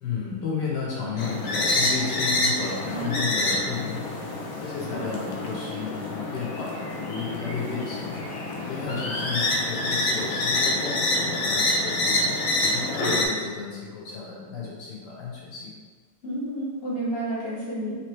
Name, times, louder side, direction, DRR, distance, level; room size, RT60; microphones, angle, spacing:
voice 1, 0.0-4.2 4.6-6.7 7.0-8.1 8.7-12.2 12.6-15.7, left 5 dB, 60° left, -5 dB, 1.6 m, -33 dB
sound 1, 1.2-13.3, left 2 dB, 80° left, 0.7 m, -27 dB
voice 2, 2.9-3.2 4.9-5.0 16.2-18.0, right 1 dB, 40° left, -8 dB, 0.9 m, -31 dB
3.8 x 3.1 x 3.1 m, 1.5 s
omnidirectional pair, 2.1 m